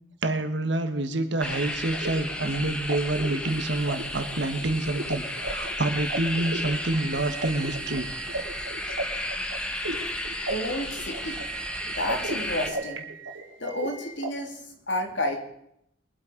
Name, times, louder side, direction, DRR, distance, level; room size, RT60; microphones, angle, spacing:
voice 1, 0.2-8.1, right 2 dB, 65° right, 9 dB, 1.4 m, -28 dB
sound 1, 1.4-12.7, left 1 dB, 5° left, 1.1 m, -33 dB
sound 2, 1.5-14.3, right 2 dB, 80° right, 2.2 m, -36 dB
voice 2, 10.5-11.4 11.8-13.1 13.6-15.4, left 1 dB, 65° left, 2 dB, 2.8 m, -31 dB
22.5 x 8.4 x 5.1 m, 0.75 s
head